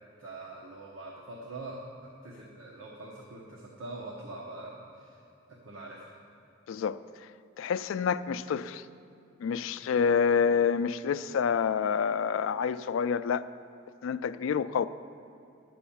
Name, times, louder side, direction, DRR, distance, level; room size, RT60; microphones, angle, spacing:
voice 1, 0.2-1.9 2.2-5.2 5.5-6.1 9.8-10.0, right 2 dB, 85° right, 1.0 m, -44 dB
voice 2, 6.7-7.0 7.6-8.8 9.4-13.5 14.0-14.9, left 6 dB, 90° left, 0.3 m, -27 dB
9.9 x 6.1 x 7.1 m
head